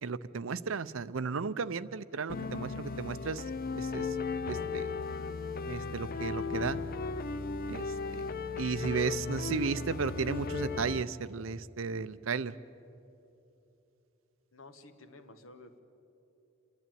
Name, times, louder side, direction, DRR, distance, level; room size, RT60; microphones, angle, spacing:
voice 1, 0.0-3.4 3.7-4.2 4.5-4.9 5.7-6.8 7.7-7.9 8.1-8.2 8.6-12.5, right 5 dB, 70° right, 15 dB, 0.6 m, -34 dB
sound 1, 2.3-11.1, left 4 dB, 45° left, 0.6 m, -36 dB
voice 2, 14.5-15.8, left 2 dB, 70° left, 8 dB, 1.4 m, -52 dB
29.0 x 11.5 x 9.1 m, 2.8 s
head